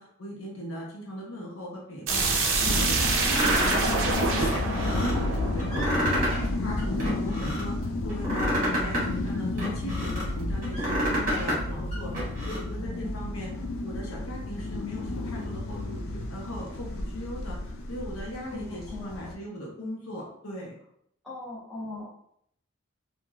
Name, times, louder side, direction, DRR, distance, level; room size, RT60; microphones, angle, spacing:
voice 1, 0.0-13.5 13.8-17.6 17.9-20.7, equal, 90° left, -2 dB, 0.8 m, -39 dB
sound 1, 2.1-6.8, right 3 dB, 65° right, 0.5 m, -27 dB
sound 2, 2.6-19.3, left 2 dB, 75° left, 0.4 m, -32 dB
sound 3, 3.3-3.9 4.4-5.1 5.6-6.5 6.8-7.6 8.1-10.2 10.6-11.6 11.9-12.6, equal, 40° right, 1.1 m, -29 dB
voice 2, 12.8-13.1 18.5-19.3 21.2-22.1, left 2 dB, ahead, -10 dB, 0.9 m, -40 dB
3.0 x 2.3 x 2.3 m, 0.69 s
head